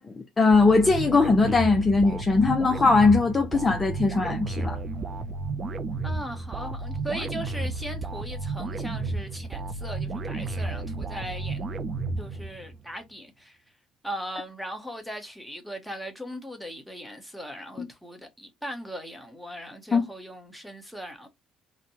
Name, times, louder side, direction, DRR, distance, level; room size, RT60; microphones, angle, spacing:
voice 1, 0.0-4.8 17.8-17.9 19.9-20.0, left 3 dB, 20° left, 0.5 m, -20 dB
sound 1, 0.5-12.8, right 3 dB, 35° right, 0.4 m, -32 dB
voice 2, 6.0-11.7 12.2-13.6 14.0-21.3, equal, ahead, 0.9 m, -38 dB
4.0 x 2.2 x 2.8 m
cardioid pair, 120°, 0 cm